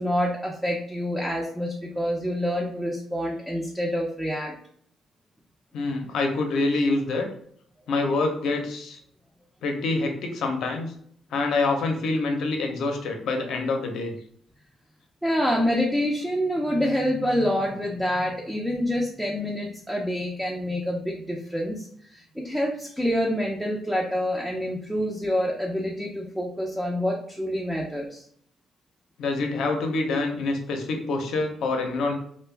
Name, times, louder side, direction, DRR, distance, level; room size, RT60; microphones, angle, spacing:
voice 1, 0.0-4.5 15.2-28.2, equal, 5° right, -2 dB, 0.5 m, -27 dB
voice 2, 5.7-7.3 7.9-9.0 9.6-10.9 11.3-14.1 29.2-32.1, left 3 dB, 75° left, 3 dB, 0.6 m, -26 dB
2.3 x 2.1 x 3.2 m, 0.62 s
cardioid pair, 90°, 0 cm